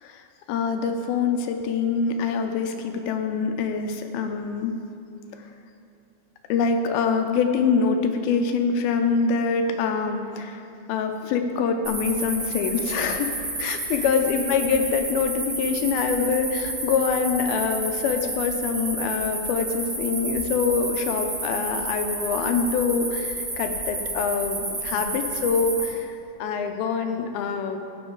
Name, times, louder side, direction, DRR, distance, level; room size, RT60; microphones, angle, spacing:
voice 1, 0.0-4.7 6.5-10.6 10.9-13.3 13.6-27.8, left 5 dB, 80° left, 5 dB, 2.5 m, -25 dB
sound 1, 11.8-25.9, right 2 dB, 35° right, 1.9 m, -30 dB
16.0 x 7.1 x 3.8 m, 2.5 s
omnidirectional pair, 4.4 m